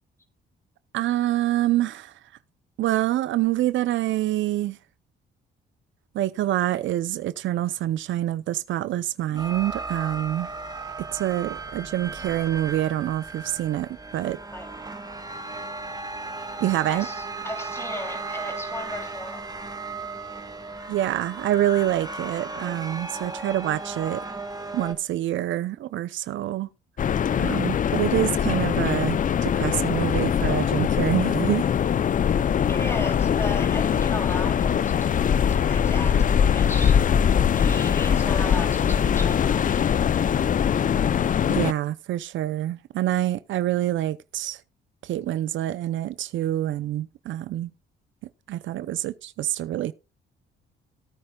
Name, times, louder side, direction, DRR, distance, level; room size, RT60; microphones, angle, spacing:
voice 1, 0.9-2.1 2.8-4.8 6.1-10.5 11.1-14.4 16.6-17.1 20.9-24.2 24.7-26.7 27.4-31.7 41.5-44.6 45.0-47.7 48.5-49.9, right 13 dB, 75° right, 0.6 m, -26 dB
sound 1, 9.3-24.9, right 3 dB, 20° right, 1.7 m, -36 dB
voice 2, 14.5-14.8 16.9-19.5 32.7-37.1 37.5-40.1, left 1 dB, 15° left, 2.9 m, -36 dB
sound 2, 27.0-41.7, left 8 dB, 40° left, 0.5 m, -22 dB
18.5 x 8.8 x 2.3 m
cardioid pair, 90°, 20 cm